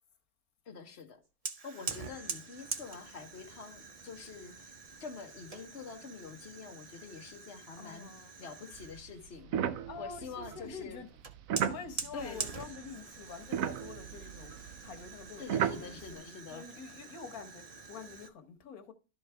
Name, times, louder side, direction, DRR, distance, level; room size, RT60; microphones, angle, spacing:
voice 1, 0.7-1.2 1.6-4.7 5.0-8.1 8.4-9.6 10.0-11.0 12.1-12.5 15.4-16.7, left 5 dB, 50° left, 1.4 m, -46 dB
Fire, 1.4-9.1 11.2-18.3, right 4 dB, 40° right, 0.6 m, -45 dB
voice 2, 7.8-8.3 9.9-11.1 11.6-18.9, left 5 dB, 85° left, 1.6 m, -47 dB
sound 1, 8.7-13.0 13.2-16.1, right 9 dB, 75° right, 1.0 m, -36 dB
12.5 x 4.6 x 3.4 m
omnidirectional pair, 1.5 m